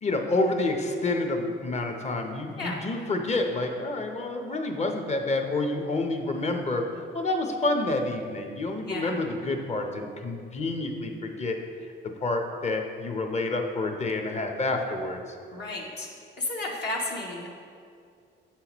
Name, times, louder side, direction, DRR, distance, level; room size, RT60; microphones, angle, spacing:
voice 1, 0.0-11.6 12.2-15.2, left 2 dB, 35° left, 4 dB, 0.8 m, -28 dB
voice 2, 8.9-9.2 15.5-16.1 16.4-17.5, left 2 dB, 55° left, -3 dB, 1.0 m, -33 dB
7.9 x 5.6 x 3.0 m, 2.3 s
cardioid pair, 90°, 20 cm